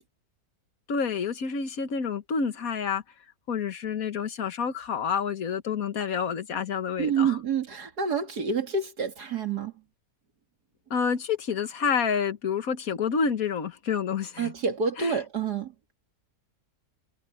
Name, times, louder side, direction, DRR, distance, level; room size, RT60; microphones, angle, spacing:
voice 1, 0.9-3.0 3.5-7.4 10.9-14.5 15.0-15.2, left 6 dB, 65° left, 1.8 m, -28 dB
voice 2, 7.0-9.7 14.4-15.7, right 6 dB, 90° right, 2.9 m, -28 dB
omnidirectional pair, 1.7 m